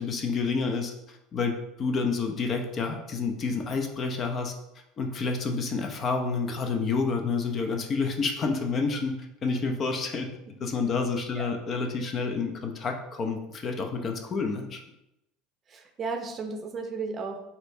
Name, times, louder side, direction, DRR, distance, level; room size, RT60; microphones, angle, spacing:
voice 1, 0.0-4.5 5.0-14.8, left 4 dB, 40° left, 4 dB, 0.6 m, -29 dB
voice 2, 15.7-17.4, right 4 dB, 35° right, 4 dB, 0.6 m, -34 dB
4.2 x 2.7 x 2.7 m, 0.88 s
hypercardioid pair, 75°, 0 cm